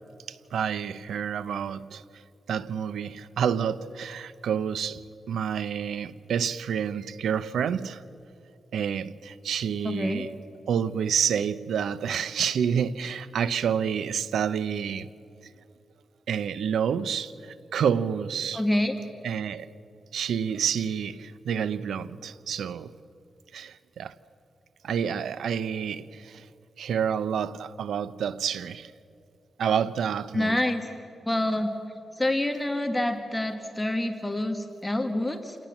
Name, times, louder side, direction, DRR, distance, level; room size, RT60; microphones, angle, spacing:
voice 1, 0.3-2.0 2.5-5.0 5.3-8.0 8.7-10.4 10.7-15.1 16.3-18.7 19.2-19.7 20.1-22.9 23.5-24.2 24.8-26.4 26.8-28.9 29.6-30.6, right 7 dB, 90° right, 0.7 m, -28 dB
voice 2, 9.8-10.2 18.5-19.0 30.3-30.9 31.2-31.7 32.2-35.5, left 1 dB, 10° left, 1.6 m, -27 dB
28.5 x 18.5 x 7.3 m
cardioid pair, 100°, 0 cm